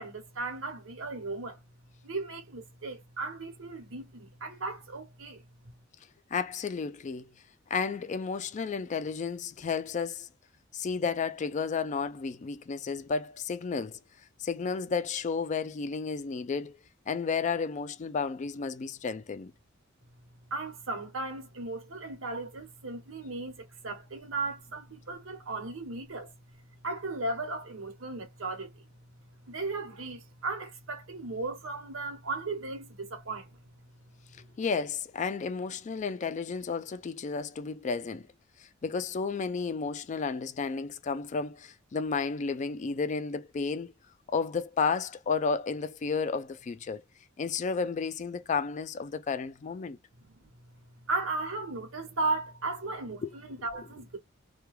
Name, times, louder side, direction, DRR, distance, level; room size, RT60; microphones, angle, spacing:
voice 1, 0.0-1.6 2.0-5.4 20.5-26.3 26.8-28.8 29.5-33.6 50.2-50.5 51.1-54.2, right 3 dB, 85° right, 0.9 m, -36 dB
voice 2, 6.3-7.3 7.7-10.3 10.7-14.0 14.4-16.8 17.1-19.5 34.6-38.3 38.6-43.9 44.3-47.0 47.4-50.0 53.2-53.3, left 5 dB, 35° left, 0.3 m, -32 dB
2.2 x 2.2 x 3.1 m
head